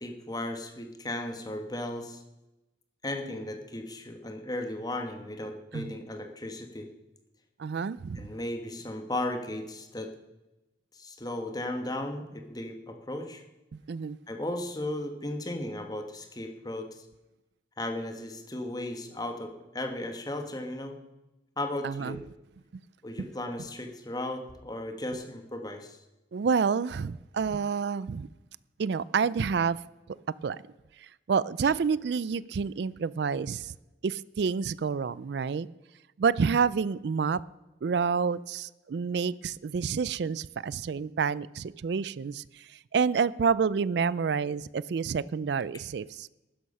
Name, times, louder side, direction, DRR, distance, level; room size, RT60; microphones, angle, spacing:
voice 1, 0.0-2.2 3.0-6.9 8.1-10.1 10.9-13.4 14.3-17.0 17.8-21.0 21.6-22.2 23.0-26.0, left 1 dB, 20° left, 1.3 m, -36 dB
voice 2, 7.6-8.2 13.9-14.2 21.8-22.2 23.2-23.3 26.3-28.3 28.8-29.8 30.4-30.6 31.0-33.7 34.0-35.7 36.2-37.4 37.8-46.3, right 5 dB, 60° right, 0.3 m, -28 dB
12.5 x 10.5 x 5.4 m
head